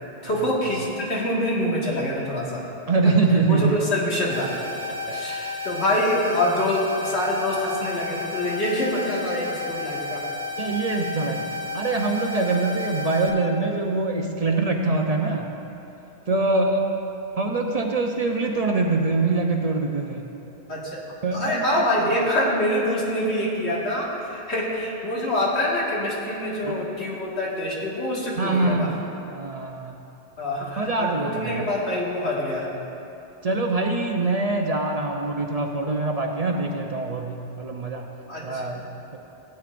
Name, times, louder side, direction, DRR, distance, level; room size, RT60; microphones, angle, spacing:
voice 1, 0.2-2.6 3.0-3.1 3.5-4.5 5.1-10.2 20.7-21.0 21.3-28.9 30.4-32.7 38.3-38.7, left 1 dB, 90° left, -5 dB, 2.1 m, -25 dB
voice 2, 2.9-3.8 4.9-5.2 10.6-15.5 16.3-16.8 17.4-20.3 21.2-22.1 26.6-26.8 28.4-28.9 29.3-30.0 30.8-31.7 33.4-38.1 38.4-39.2, right 3 dB, 45° right, 1 dB, 0.6 m, -24 dB
sound 1, 4.3-13.3, left 3 dB, 65° right, 1.3 m, -32 dB
16.0 x 9.0 x 2.5 m, 2.9 s
omnidirectional pair, 1.1 m